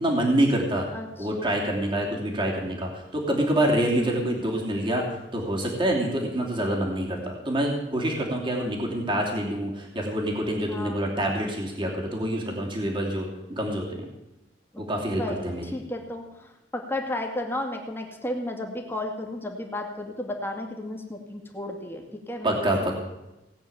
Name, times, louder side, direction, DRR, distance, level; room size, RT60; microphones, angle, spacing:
voice 1, 0.0-0.9 1.2-14.1 14.8-15.6 22.4-23.0, right 1 dB, 30° right, -1 dB, 2.8 m, -26 dB
voice 2, 0.9-1.5 3.8-4.2 10.7-11.0 14.7-14.8 15.2-23.0, left 1 dB, 15° left, 2 dB, 2.2 m, -34 dB
18.0 x 9.2 x 7.0 m, 0.97 s
head